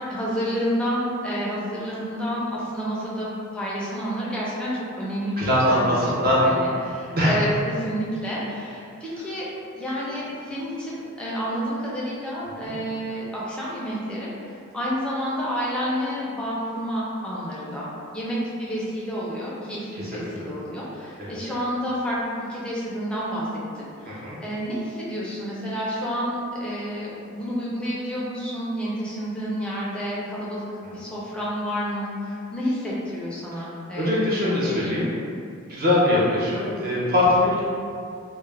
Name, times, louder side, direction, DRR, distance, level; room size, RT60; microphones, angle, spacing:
voice 1, 0.0-3.3 3.5-9.4 9.8-17.9 18.1-35.0, equal, 5° left, -7 dB, 0.5 m, -29 dB
voice 2, 5.4-6.4 7.1-7.3 12.6-12.7 20.0-20.3 21.2-21.3 24.1-24.4 34.0-35.1 35.7-37.6, left 1 dB, 45° right, -7 dB, 0.6 m, -22 dB
2.3 x 2.1 x 3.2 m, 2.4 s
head